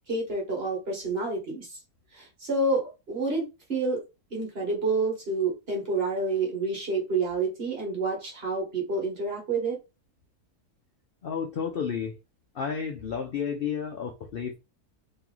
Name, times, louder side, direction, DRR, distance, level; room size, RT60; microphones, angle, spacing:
voice 1, 0.1-1.8 2.1-3.4 3.7-4.0 4.3-9.8, right 3 dB, 40° right, -1 dB, 1.6 m, -28 dB
voice 2, 11.2-12.2 12.5-14.6, left 7 dB, 80° left, 4 dB, 0.5 m, -31 dB
3.0 x 2.9 x 3.8 m, 0.27 s
omnidirectional pair, 1.6 m